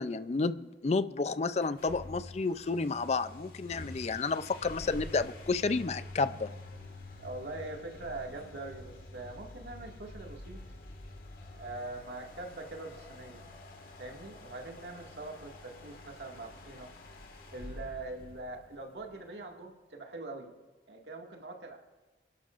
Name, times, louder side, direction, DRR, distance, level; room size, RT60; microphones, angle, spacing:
voice 1, 0.0-6.5, left 4 dB, 35° left, 0.4 m, -31 dB
sound 1, 1.5-19.0, left 1 dB, 55° left, 1.8 m, -48 dB
voice 2, 7.2-10.8 11.6-13.4 14.0-17.0 17.5-20.5 20.9-21.8, right 2 dB, 75° right, 2.0 m, -43 dB
28.0 x 11.5 x 2.5 m
head